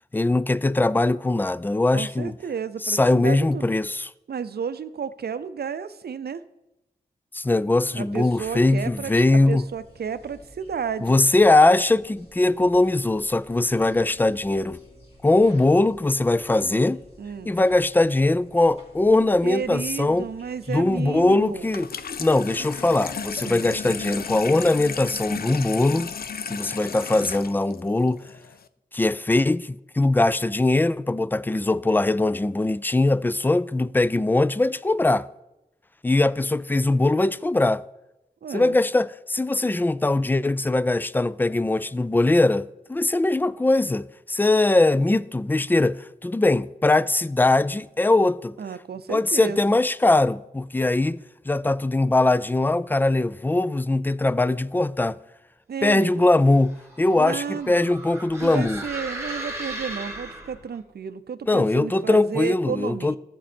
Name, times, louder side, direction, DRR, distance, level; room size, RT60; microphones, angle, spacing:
voice 1, 0.1-2.3 2.8-4.1 7.3-9.6 11.0-14.8 15.2-17.0 17.5-20.3 20.7-21.9 22.2-26.1 26.5-28.2 28.9-35.3 36.0-37.8 38.5-48.6 49.1-51.2 51.5-55.2 55.8-58.8 61.5-63.2, left 2 dB, 10° left, 0.3 m, -21 dB
voice 2, 1.9-3.7 4.3-6.4 7.9-11.2 17.2-17.5 19.4-21.7 23.5-23.7 38.4-38.8 48.6-49.8 55.7-56.2 57.2-58.0 58.4-63.2, right 6 dB, 75° right, 0.6 m, -32 dB
sound 1, 8.1-26.4, equal, 35° left, 2.5 m, -51 dB
Water tap faucet / Sink (filling or washing), 21.6-28.6, left 6 dB, 65° left, 0.5 m, -34 dB
sound 2, 56.4-60.8, right 1 dB, 15° right, 1.5 m, -37 dB
14.0 x 7.5 x 4.3 m
wide cardioid pair, 85°, 17 cm